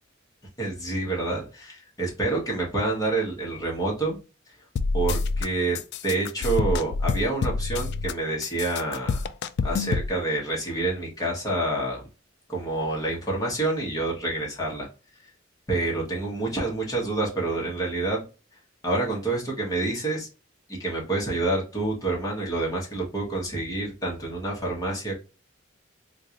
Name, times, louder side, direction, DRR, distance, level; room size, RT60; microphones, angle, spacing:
voice 1, 0.6-4.2 4.9-5.8 6.0-9.2 9.6-12.0 12.5-14.9 15.7-18.2 18.8-20.3 20.7-25.2, right 2 dB, 20° left, -3 dB, 1.4 m, -28 dB
sound 1, 4.8-5.5 5.7-8.1 8.4-10.1, left 4 dB, 55° left, 0.3 m, -27 dB
3.7 x 2.5 x 2.9 m, 0.32 s
head